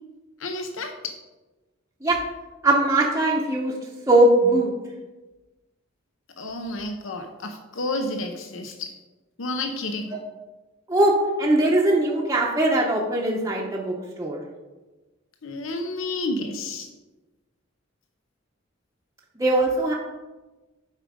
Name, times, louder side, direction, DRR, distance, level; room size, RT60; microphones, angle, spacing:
voice 1, 0.4-1.1 6.4-8.9 9.4-10.2 15.4-16.9, left 2 dB, 75° left, 4 dB, 0.8 m, -30 dB
voice 2, 2.6-3.7 4.1-4.7 10.9-14.4 19.4-19.9, right 1 dB, 15° right, -2 dB, 0.9 m, -20 dB
8.2 x 5.1 x 5.1 m, 1.2 s
head